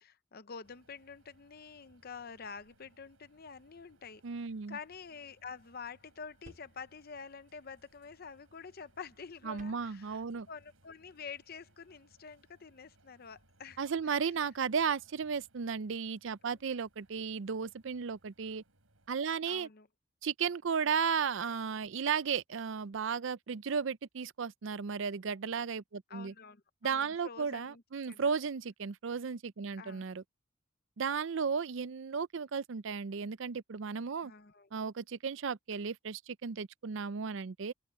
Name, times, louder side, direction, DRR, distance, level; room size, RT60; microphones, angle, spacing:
voice 1, 0.0-4.2 4.7-10.2 10.5-13.8 14.1-14.3 16.6-16.7 19.5-19.9 26.1-27.8 28.1-28.3 29.8-30.1 34.2-34.7, left 5 dB, 45° left, 0.7 m, -48 dB
sound 1, 0.6-19.1, right 1 dB, 85° right, 5.3 m, -68 dB
voice 2, 4.2-4.8 9.4-10.5 13.8-18.6 19.1-19.7 20.2-26.3 26.8-30.2 31.0-34.3 34.7-37.7, right 6 dB, 60° right, 0.5 m, -34 dB
sound 2, 5.5-10.5, right 1 dB, 45° right, 5.2 m, -64 dB
open air
head